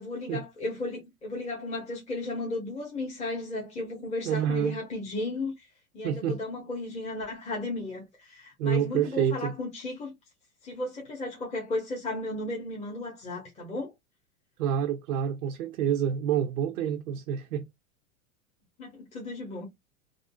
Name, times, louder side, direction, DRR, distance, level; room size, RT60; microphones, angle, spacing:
voice 1, 0.0-5.7 5.9-10.1 10.6-13.9 18.8-19.7, left 2 dB, 15° left, 1.1 m, -34 dB
voice 2, 4.2-4.8 6.0-6.4 8.6-9.5 14.6-17.7, right 9 dB, 80° right, 0.6 m, -28 dB
3.7 x 2.0 x 2.2 m
hypercardioid pair, 115°, 43 cm